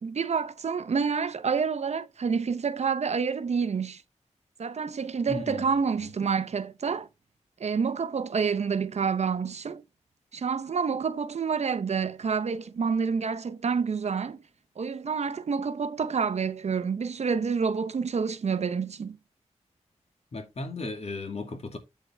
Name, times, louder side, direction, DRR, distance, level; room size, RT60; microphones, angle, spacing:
voice 1, 0.0-4.0 4.6-7.1 7.6-9.8 10.3-14.4 14.8-19.2, right 5 dB, 65° right, 0.7 m, -28 dB
voice 2, 5.3-5.8 20.3-21.8, left 3 dB, 60° left, 2.4 m, -35 dB
8.5 x 7.6 x 3.4 m
wide cardioid pair, 120°, 12 cm